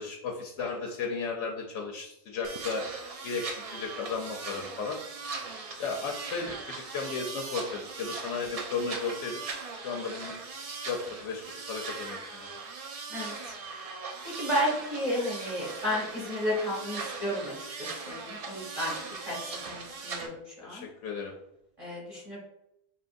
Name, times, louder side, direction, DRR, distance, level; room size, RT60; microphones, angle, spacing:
voice 1, 0.0-2.9 3.2-5.0 5.8-9.4 9.8-10.3 10.9-11.4 11.7-12.6 20.6-21.3, left 4 dB, 90° left, 1 dB, 1.0 m, -34 dB
sound 1, 2.4-20.3, right 4 dB, 55° right, 0.4 m, -39 dB
voice 2, 14.2-17.5 18.1-18.9 19.3-19.4 19.7-20.8 21.8-22.4, equal, 30° right, -4 dB, 1.7 m, -32 dB
5.4 x 2.9 x 2.5 m, 0.83 s
omnidirectional pair, 1.2 m